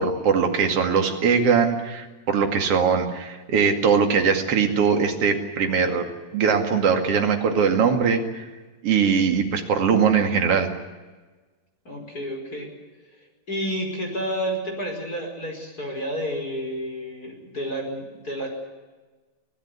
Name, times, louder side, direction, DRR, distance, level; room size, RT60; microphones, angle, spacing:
voice 1, 0.0-6.1 6.3-8.4 8.8-10.7, right 6 dB, 40° right, 4 dB, 2.7 m, -21 dB
voice 2, 11.9-12.7 13.5-18.5, equal, 20° left, 2 dB, 5.2 m, -30 dB
25.0 x 16.5 x 9.8 m, 1.3 s
omnidirectional pair, 4.8 m